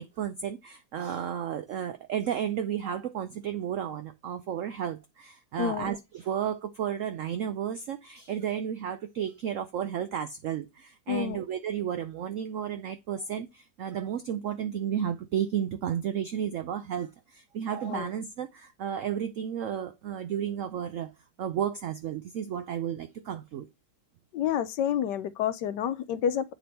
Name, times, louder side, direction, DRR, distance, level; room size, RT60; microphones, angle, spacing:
voice 1, 0.0-21.1 21.4-23.7, right 9 dB, 85° right, 0.7 m, -33 dB
voice 2, 5.6-5.9 11.1-11.4 17.9-18.1 24.3-26.5, left 9 dB, 75° left, 1.2 m, -29 dB
8.6 x 3.4 x 4.2 m
omnidirectional pair, 1.9 m